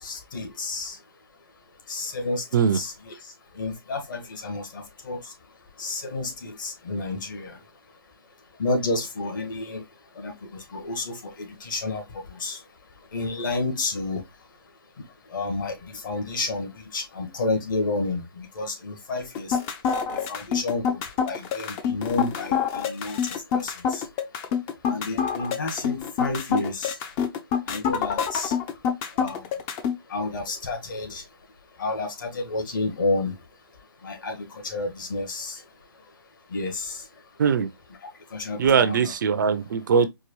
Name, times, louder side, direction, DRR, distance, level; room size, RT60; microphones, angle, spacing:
voice 1, 0.0-1.0 1.9-5.3 5.8-7.6 8.6-9.8 10.1-12.6 13.1-14.2 15.3-19.6 20.1-24.0 24.9-27.0 27.7-28.5 29.2-29.4 30.1-31.2 31.8-33.3 34.0-35.6 36.5-37.0 38.3-39.1, left 3 dB, 55° left, 1.7 m, -30 dB
sound 1, 19.3-29.9, left 7 dB, 20° left, 0.5 m, -26 dB
voice 2, 37.4-37.7 38.6-40.1, right 6 dB, 55° right, 0.6 m, -21 dB
4.7 x 2.3 x 3.1 m
hypercardioid pair, 150°, 12 cm